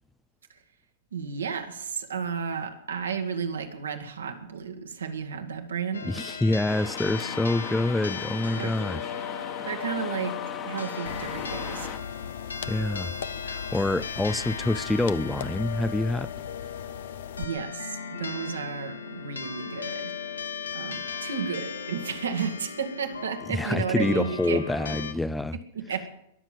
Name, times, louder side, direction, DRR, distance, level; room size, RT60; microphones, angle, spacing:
voice 1, 1.1-6.1 8.6-8.7 9.7-11.9 17.4-20.2 20.7-24.6 25.5-26.1, right 6 dB, 80° right, 1.9 m, -33 dB
sound 1, 5.9-25.1, left 6 dB, 80° left, 1.3 m, -37 dB
voice 2, 6.0-9.1 12.7-13.1 13.4-16.3 23.5-25.6, left 2 dB, 5° left, 0.5 m, -27 dB
sound 2, 6.7-12.0, left 7 dB, 30° left, 1.6 m, -38 dB
sound 3, 11.0-17.4, left 8 dB, 65° left, 0.7 m, -39 dB
21.5 x 7.3 x 7.6 m
figure-of-eight pair, 100°, 0 cm